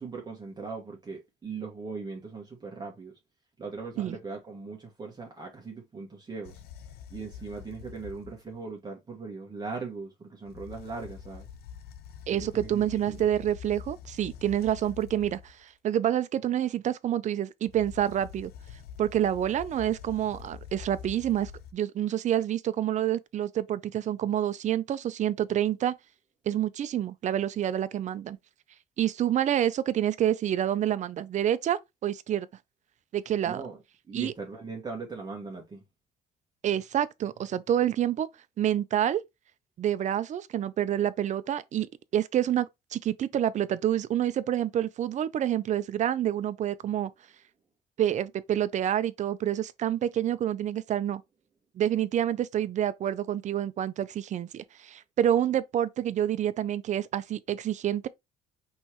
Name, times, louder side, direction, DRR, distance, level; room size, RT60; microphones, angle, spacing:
voice 1, 0.0-3.1 3.6-6.6 7.1-11.5 12.3-13.2 33.5-33.8 34.1-35.8, right 4 dB, 25° right, 1.4 m, -39 dB
sound 1, 6.4-8.6 10.5-15.6 17.7-21.7, left 8 dB, 70° left, 0.7 m, -46 dB
voice 2, 12.3-18.5 19.0-25.9 26.5-28.4 29.0-32.5 33.1-33.6 34.1-34.3 36.6-38.3 38.6-39.2 39.8-41.9 42.1-47.1 48.0-51.2 51.8-58.1, right 11 dB, 45° right, 0.5 m, -28 dB
5.4 x 3.2 x 3.0 m
cardioid pair, 110°, 17 cm